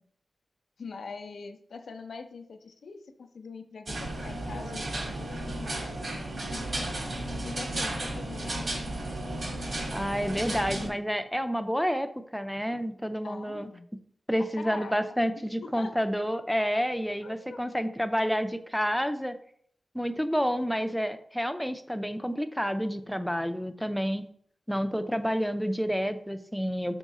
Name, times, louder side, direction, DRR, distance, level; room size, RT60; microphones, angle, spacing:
voice 1, 0.8-6.1 6.5-7.0 7.4-8.6 13.2-13.9 14.4-14.9 15.6-16.0 17.2-17.6, left 4 dB, 85° left, 7 dB, 0.6 m, -43 dB
sound 1, 3.9-10.9, right 1 dB, 60° right, 1.7 m, -34 dB
voice 2, 9.9-13.7 14.3-19.4 19.9-24.2 24.7-27.0, equal, ahead, 8 dB, 0.5 m, -29 dB
6.3 x 3.7 x 4.1 m, 0.64 s
wide cardioid pair, 95°, 0 cm